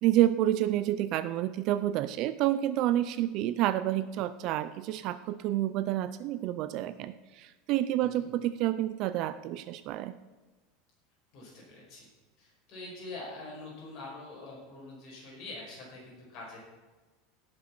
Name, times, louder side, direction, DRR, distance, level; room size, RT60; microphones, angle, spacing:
voice 1, 0.0-10.2, right 13 dB, 40° right, 14 dB, 0.4 m, -29 dB
voice 2, 11.3-12.1 12.4-16.6, left 2 dB, 35° left, -3 dB, 5.6 m, -45 dB
16.5 x 7.5 x 6.0 m, 1.2 s
supercardioid pair, 175°, 0 cm